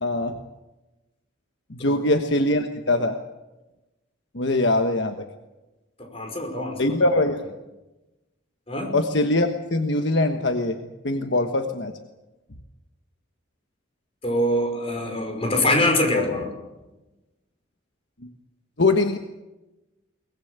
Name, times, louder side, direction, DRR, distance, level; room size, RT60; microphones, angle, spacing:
voice 1, 0.0-0.4 1.7-3.2 4.3-5.1 6.8-7.4 8.9-10.8 11.0-11.9 18.8-19.2, left 2 dB, 60° left, 6 dB, 1.3 m, -22 dB
voice 2, 6.0-7.2 8.7-9.0 14.2-16.5, left 1 dB, 30° left, 3 dB, 5.5 m, -24 dB
23.0 x 20.0 x 8.1 m, 1.1 s
head